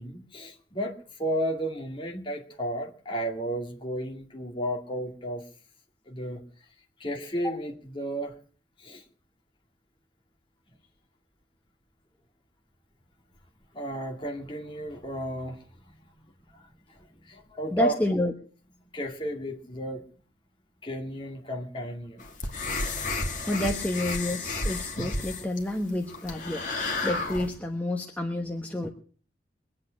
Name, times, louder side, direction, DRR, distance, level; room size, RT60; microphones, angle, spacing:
voice 1, 0.0-5.4 6.1-6.4 7.0-8.4 8.8-9.0 13.7-15.7 16.1-16.2 16.5-18.0 18.8-20.1 20.8-22.2, equal, 30° left, 1 dB, 2.2 m, -33 dB
voice 2, 17.7-18.3 23.5-28.9, left 1 dB, 10° left, 1 dB, 1.2 m, -29 dB
sound 1, 22.2-27.5, left 2 dB, 45° left, 2.4 m, -32 dB
22.5 x 8.6 x 6.3 m, 0.42 s
head